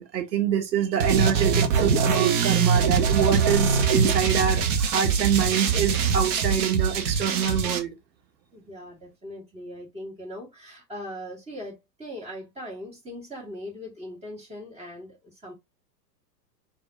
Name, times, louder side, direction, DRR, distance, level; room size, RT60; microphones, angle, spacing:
voice 1, 0.0-7.9, right 8 dB, 85° right, 1.2 m, -26 dB
sound 1, 1.0-7.8, right 6 dB, 50° right, 1.2 m, -23 dB
voice 2, 8.5-15.5, equal, 15° right, 2.1 m, -40 dB
4.3 x 3.3 x 2.6 m
hypercardioid pair, 115°, 50 cm